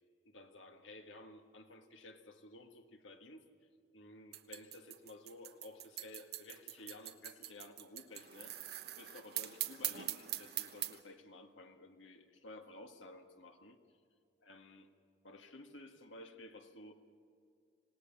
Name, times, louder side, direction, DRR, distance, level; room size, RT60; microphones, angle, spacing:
voice 1, 0.2-3.4 3.9-13.8 14.4-14.9 15.2-16.9, left 2 dB, 85° left, 5 dB, 1.7 m, -54 dB
sound 1, 4.3-11.0, right 13 dB, 55° right, 1.2 m, -42 dB
26.5 x 18.5 x 7.1 m, 2.4 s
head